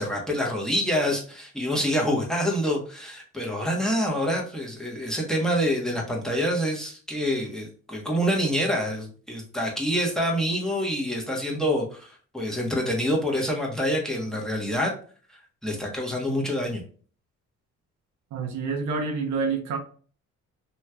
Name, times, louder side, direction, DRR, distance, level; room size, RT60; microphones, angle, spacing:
voice 1, 0.0-14.9 15.6-16.8, equal, ahead, 1.1 m, -26 dB
voice 2, 18.3-19.8, right 4 dB, 75° right, 0.9 m, -27 dB
3.1 x 3.0 x 2.3 m
cardioid pair, 90°, 30 cm